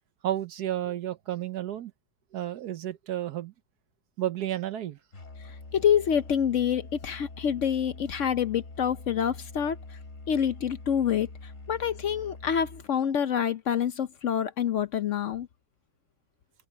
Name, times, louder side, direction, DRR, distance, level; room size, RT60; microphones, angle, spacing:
voice 1, 0.2-1.9 2.3-3.5 4.2-5.0, right 12 dB, 65° right, 1.3 m, -31 dB
Musical instrument, 5.1-12.9, left 3 dB, 40° left, 3.2 m, -45 dB
voice 2, 5.4-10.0 10.3-15.5, left 8 dB, 65° left, 0.7 m, -27 dB
omnidirectional pair, 2.0 m